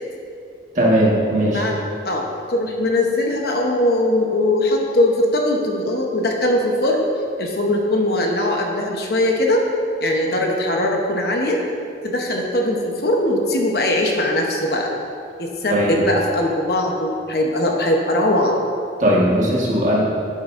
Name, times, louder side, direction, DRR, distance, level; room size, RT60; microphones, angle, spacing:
voice 1, 0.7-1.7 15.7-16.0 19.0-20.0, equal, 40° right, -5 dB, 1.6 m, -18 dB
voice 2, 2.0-7.1 7.4-9.6 10.0-11.6 12.0-14.9 15.4-18.6, left 1 dB, 60° left, 0 dB, 1.0 m, -20 dB
10.5 x 7.8 x 2.6 m, 2.5 s
head